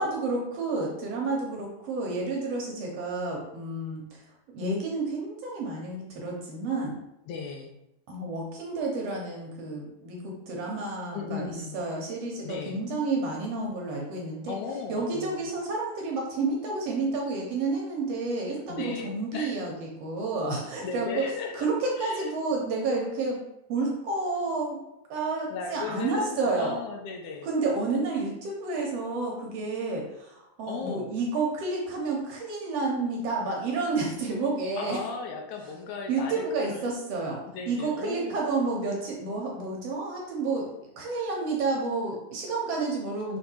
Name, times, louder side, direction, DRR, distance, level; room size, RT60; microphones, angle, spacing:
voice 1, 0.0-4.2 4.5-7.0 8.1-14.6 14.9-21.2 21.5-23.4 23.7-24.8 25.1-26.8 27.4-35.0 36.1-40.7 41.0-43.4, right 3 dB, 65° right, -1 dB, 1.8 m, -30 dB
voice 2, 7.3-7.7 11.1-11.8 12.4-12.8 14.5-15.5 18.7-19.6 20.8-21.7 22.0-22.3 25.5-27.5 30.7-31.1 34.8-36.8 37.5-38.4, left 4 dB, 80° left, 2 dB, 2.1 m, -36 dB
5.4 x 3.8 x 4.5 m, 0.88 s
omnidirectional pair, 3.5 m